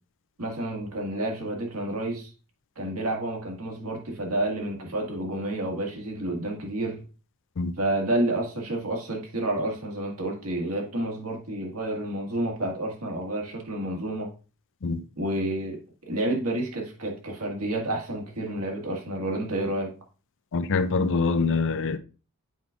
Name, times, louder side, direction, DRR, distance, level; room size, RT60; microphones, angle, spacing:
voice 1, 0.4-2.3 2.7-7.0 7.8-14.3 15.2-19.9, right 1 dB, 75° right, 1.8 m, -30 dB
voice 2, 20.5-22.0, left 4 dB, 60° left, 0.5 m, -24 dB
7.9 x 4.9 x 2.4 m
head